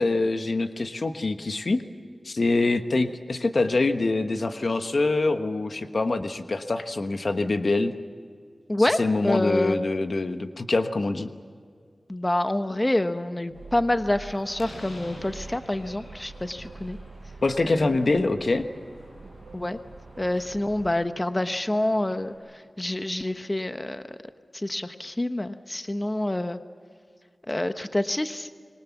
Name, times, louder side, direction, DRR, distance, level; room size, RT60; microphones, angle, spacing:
voice 1, 0.0-1.8 2.2-7.9 8.8-11.3 17.4-18.6, left 3 dB, 65° left, 8 dB, 1.2 m, -25 dB
voice 2, 8.7-9.8 12.1-17.0 17.6-18.0 19.5-19.8 20.2-24.2 24.5-26.6 27.5-28.5, left 1 dB, 25° left, 9 dB, 1.1 m, -27 dB
sound 1, 13.5-21.0, right 3 dB, 85° right, 1.2 m, -45 dB
Slam, 13.8-22.4, left 1 dB, 85° left, 7.6 m, -50 dB
25.5 x 22.5 x 7.2 m, 2.1 s
cardioid pair, 45°, 0 cm